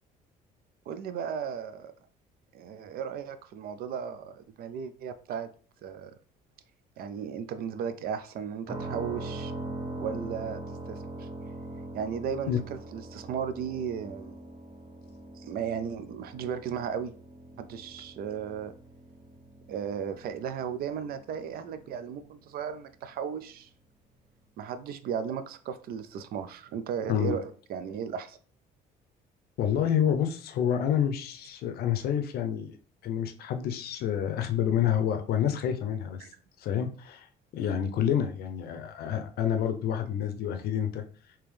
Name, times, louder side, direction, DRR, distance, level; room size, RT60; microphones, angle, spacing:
voice 1, 0.9-1.9 2.5-5.5 5.8-6.1 7.0-9.5 10.0-10.6 10.9-11.3 11.9-14.4 15.4-17.1 17.6-18.7 19.7-23.7 24.6-28.4 36.2-36.3, right 7 dB, 65° right, 11 dB, 0.4 m, -35 dB
sound 1, 8.7-22.4, right 2 dB, 25° right, 0.8 m, -42 dB
voice 2, 29.6-32.8 33.0-36.2 36.6-37.3 37.5-41.0, left 9 dB, 70° left, 7 dB, 0.6 m, -28 dB
3.5 x 2.9 x 3.2 m, 0.43 s
cardioid pair, 110°, 17 cm